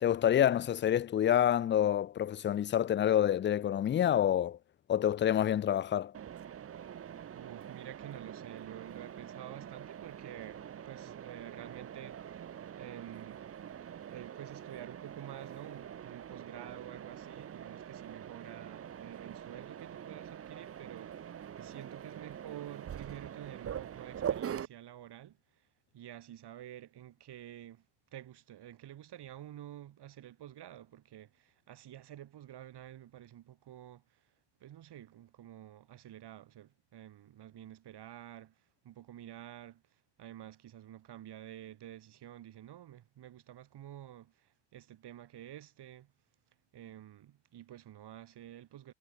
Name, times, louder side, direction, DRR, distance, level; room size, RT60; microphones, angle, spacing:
voice 1, 0.0-4.6 4.9-6.1, left 10 dB, 25° left, 0.3 m, -27 dB
Mechanisms, 6.1-24.7, right 9 dB, 30° right, 0.7 m, -44 dB
voice 2, 7.3-13.4 14.1-25.7 25.9-27.9 28.1-34.3 34.6-46.1 46.7-48.9, right 12 dB, 55° right, 2.6 m, -49 dB
cardioid pair, 115°, 49 cm